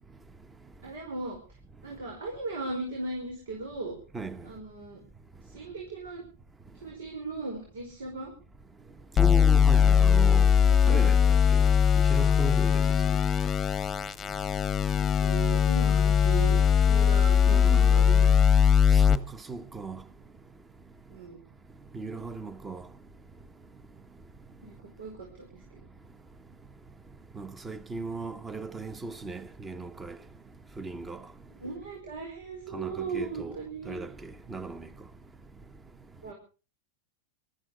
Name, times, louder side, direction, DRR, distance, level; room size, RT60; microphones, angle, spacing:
voice 1, 0.8-1.4 1.8-4.0 4.4-5.0 5.5-6.2 6.8-8.3 10.6-11.4 12.8-13.1 14.9-18.7 21.1-21.4 24.6-25.8 31.6-34.0 36.2-36.3, right 3 dB, 85° right, 5.1 m, -38 dB
sound 1, 9.2-19.2, left 7 dB, 20° left, 1.0 m, -21 dB
voice 2, 9.2-10.5 10.9-11.2 12.1-12.8 17.5-18.2 18.9-20.0 21.9-22.8 27.3-30.2 30.8-31.2 32.7-33.6 33.8-34.9, right 3 dB, 15° right, 1.1 m, -37 dB
19.5 x 13.5 x 4.9 m
hypercardioid pair, 125°, 0 cm